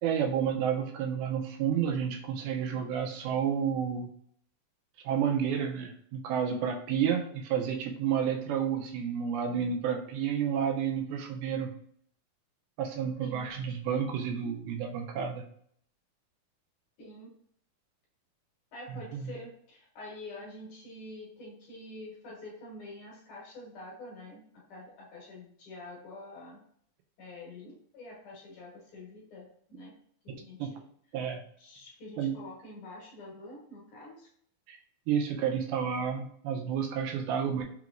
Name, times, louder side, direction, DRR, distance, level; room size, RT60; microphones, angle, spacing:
voice 1, 0.0-4.1 5.0-11.7 12.8-15.4 18.9-19.3 30.6-30.7 31.1-31.4 32.2-32.4 34.7-34.8 35.1-37.6, right 8 dB, 85° right, 3 dB, 2.4 m, -30 dB
voice 2, 13.2-13.5 17.0-17.3 18.7-24.4 24.7-26.6 27.2-29.9 30.2-30.8 31.6-34.3, left 2 dB, 65° left, -4 dB, 2.3 m, -46 dB
5.8 x 3.0 x 2.4 m, 0.63 s
omnidirectional pair, 4.4 m